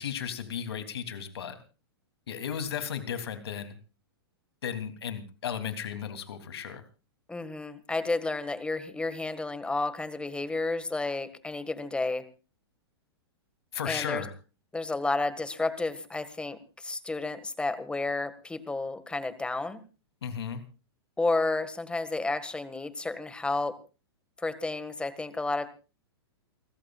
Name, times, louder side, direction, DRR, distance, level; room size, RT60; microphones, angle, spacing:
voice 1, 0.0-1.6 2.3-3.7 4.6-6.8 13.7-14.3 20.2-20.6, left 8 dB, 75° left, 8 dB, 3.0 m, -35 dB
voice 2, 7.3-12.2 13.9-14.2 14.7-19.8 21.2-23.7 24.4-25.7, left 3 dB, 5° left, 12 dB, 1.8 m, -31 dB
29.0 x 14.5 x 2.4 m, 0.33 s
hypercardioid pair, 120°, 13 cm